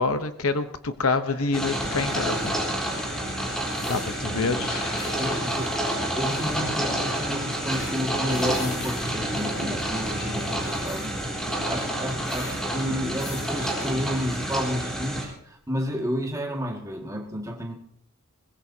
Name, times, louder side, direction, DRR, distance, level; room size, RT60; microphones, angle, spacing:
voice 1, 0.0-2.5 3.9-4.8, left 3 dB, 70° left, 10 dB, 1.0 m, -26 dB
sound 1, 1.3-14.8, left 2 dB, 50° left, 3.9 m, -41 dB
sound 2, 1.5-15.2, right 1 dB, ahead, 3.8 m, -29 dB
voice 2, 4.3-4.7 5.1-5.7 6.1-11.1 11.7-17.7, equal, 15° right, 1 dB, 2.0 m, -31 dB
22.0 x 20.5 x 2.8 m, 0.72 s
head